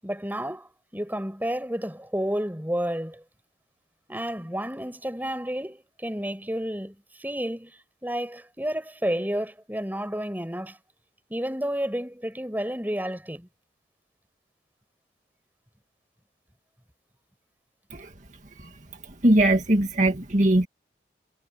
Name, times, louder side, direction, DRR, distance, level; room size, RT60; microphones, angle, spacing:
voice 1, 0.0-3.2 4.1-7.7 8.0-10.8 11.3-13.5, equal, 10° right, 7.7 m, -31 dB
voice 2, 19.2-20.7, right 1 dB, 45° right, 2.1 m, -20 dB
head